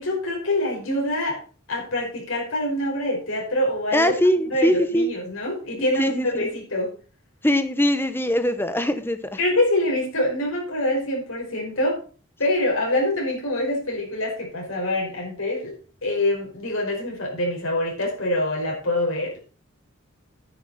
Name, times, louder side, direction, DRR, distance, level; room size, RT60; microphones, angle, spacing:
voice 1, 0.0-1.4 1.7-4.1 4.5-6.9 9.4-12.0 12.4-15.7 16.0-19.4, left 1 dB, 70° left, -2 dB, 5.5 m, -25 dB
voice 2, 3.9-5.1 6.0-6.4 7.4-9.4, equal, 10° left, 10 dB, 1.1 m, -22 dB
10.0 x 10.0 x 4.3 m, 0.38 s
head